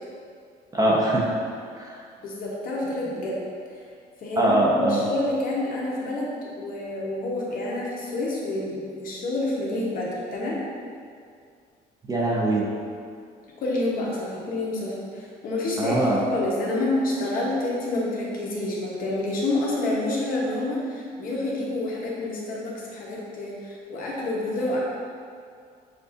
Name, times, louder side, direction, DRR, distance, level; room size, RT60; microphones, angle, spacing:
voice 1, 0.7-1.3 1.7-2.0 4.4-5.0 12.1-12.7 15.8-16.2, right 1 dB, 20° right, -3 dB, 0.7 m, -22 dB
voice 2, 2.2-3.4 4.2-10.6 13.6-24.8, left 2 dB, 55° left, -5 dB, 1.0 m, -28 dB
6.8 x 2.5 x 2.6 m, 2.2 s
cardioid pair, 110°, 17 cm